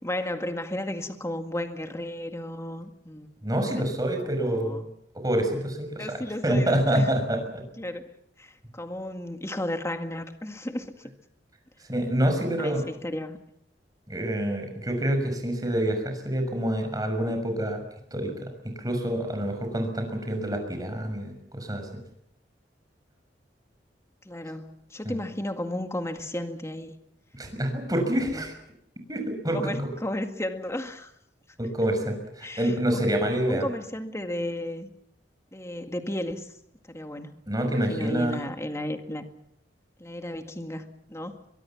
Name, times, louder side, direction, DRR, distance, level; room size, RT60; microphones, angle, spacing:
voice 1, 0.0-3.3 3.8-3.9 4.2-4.8 6.0-7.1 7.8-11.1 12.6-13.4 24.3-27.0 28.1-28.4 29.5-31.1 32.4-33.1 33.5-34.9 35.5-36.5 36.9-39.3 40.0-41.4, left 1 dB, 15° left, 6 dB, 2.0 m, -34 dB
voice 2, 3.4-4.8 5.2-7.7 11.9-12.8 14.1-17.8 18.1-22.0 25.0-25.2 27.3-28.5 29.1-29.9 31.6-33.7 37.5-38.4, right 1 dB, 20° right, 5 dB, 6.2 m, -27 dB
23.5 x 23.0 x 7.2 m, 0.77 s
head